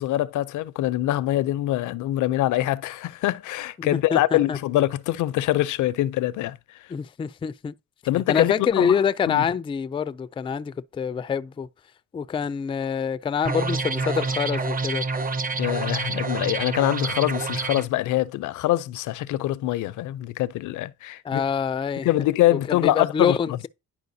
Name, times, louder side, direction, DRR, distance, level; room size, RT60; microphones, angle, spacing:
voice 1, 0.0-6.6 8.1-9.0 9.3-9.5 15.6-21.4 22.0-23.4, left 15 dB, 80° left, 0.5 m, -24 dB
voice 2, 3.8-4.6 6.9-7.7 8.3-11.7 12.1-15.1 21.2-22.1 22.5-23.7, left 7 dB, 20° left, 0.3 m, -26 dB
sound 1, 13.5-17.8, right 3 dB, 30° right, 0.8 m, -27 dB
10.5 x 4.6 x 2.7 m
cardioid pair, 90°, 30 cm